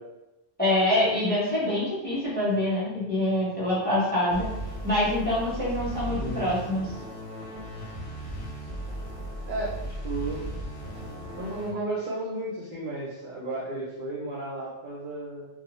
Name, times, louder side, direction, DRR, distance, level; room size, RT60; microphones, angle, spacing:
voice 1, 0.6-4.5 4.8-6.9, left 1 dB, 10° left, -10 dB, 1.2 m, -25 dB
sound 1, 4.3-11.7, right 1 dB, 70° left, 1.0 m, -36 dB
voice 2, 6.0-6.5 9.5-9.7 10.0-10.4 11.3-15.5, right 2 dB, 55° right, -6 dB, 0.6 m, -33 dB
2.6 x 2.1 x 3.0 m, 1.0 s
omnidirectional pair, 1.2 m